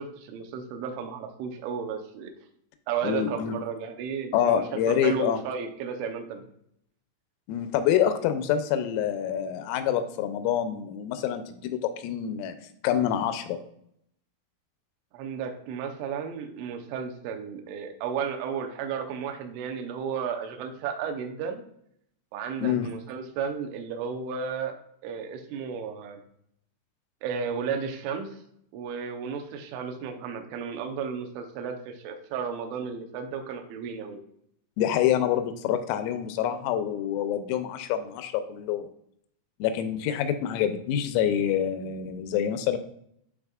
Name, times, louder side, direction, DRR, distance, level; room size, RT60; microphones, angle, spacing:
voice 1, 0.0-2.3 2.9-4.6 4.9-6.4 15.1-21.6 22.3-24.7 25.0-26.2 27.2-28.4 28.7-34.2, right 6 dB, 75° right, 4 dB, 3.0 m, -33 dB
voice 2, 3.0-3.6 4.3-5.4 7.5-12.6 12.8-13.6 22.6-22.9 34.8-38.9 39.6-42.8, left 9 dB, 90° left, 9 dB, 3.4 m, -26 dB
12.5 x 4.1 x 2.4 m, 0.71 s
omnidirectional pair, 5.9 m